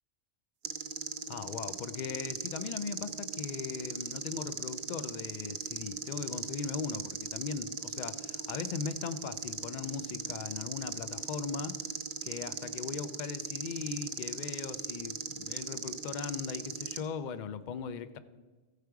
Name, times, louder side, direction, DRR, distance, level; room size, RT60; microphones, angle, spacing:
sound 1, 0.6-17.0, right 7 dB, 60° right, 0.7 m, -39 dB
voice 1, 1.3-11.8 12.2-18.2, left 6 dB, 55° left, 11 dB, 0.6 m, -39 dB
14.5 x 5.0 x 4.6 m, 1.3 s
omnidirectional pair, 1.1 m